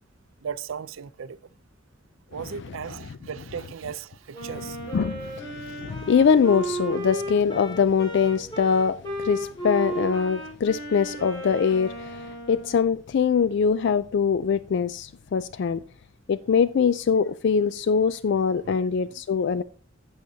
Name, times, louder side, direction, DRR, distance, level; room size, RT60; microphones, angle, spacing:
voice 1, 0.4-1.4 2.3-4.8 5.7-5.8 18.6-18.8 19.6-19.7, right 7 dB, 85° right, 0.5 m, -36 dB
Wind instrument woodwind instrument, 4.3-12.8, right 1 dB, 25° left, 4.8 m, -34 dB
voice 2, 4.9-15.8 16.3-19.6, left 6 dB, 60° left, 0.3 m, -23 dB
14.5 x 6.4 x 2.7 m
head